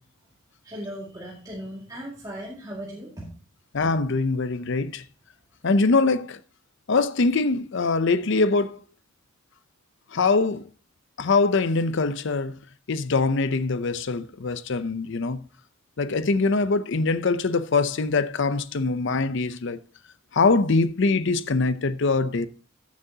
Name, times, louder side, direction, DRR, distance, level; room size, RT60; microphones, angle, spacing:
voice 1, 0.6-3.3, equal, 20° right, 2.1 m, -37 dB
voice 2, 3.7-5.0 5.6-6.4 6.9-8.8 10.1-10.7 11.2-12.6 12.9-15.4 16.0-19.8 20.3-22.5, left 3 dB, 60° left, 0.6 m, -23 dB
14.5 x 7.4 x 2.8 m
head